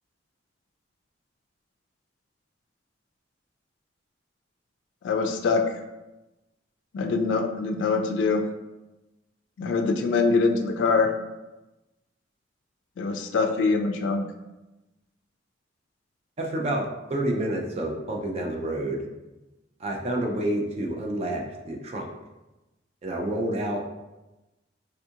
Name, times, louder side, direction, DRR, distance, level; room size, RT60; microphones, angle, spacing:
voice 1, 5.0-5.6 6.9-8.5 9.6-11.1 13.0-14.3, left 4 dB, 75° left, 5 dB, 0.3 m, -24 dB
voice 2, 16.4-19.0 19.8-22.1 23.0-23.8, right 1 dB, 35° right, 0 dB, 0.4 m, -29 dB
3.5 x 2.4 x 2.7 m, 1.0 s
head